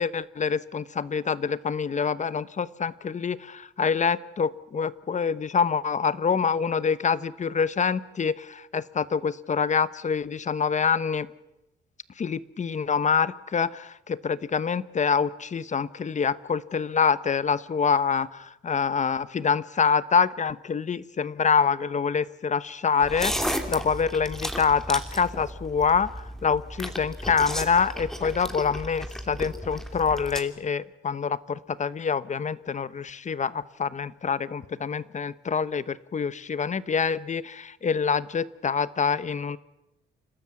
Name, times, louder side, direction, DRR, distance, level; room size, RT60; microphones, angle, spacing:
voice 1, 0.0-11.3 12.2-39.6, left 6 dB, 35° left, 17 dB, 0.9 m, -26 dB
sound 1, 23.0-30.4, equal, ahead, 2.8 m, -34 dB
29.5 x 13.0 x 9.5 m, 0.90 s
cardioid pair, 90°, 20 cm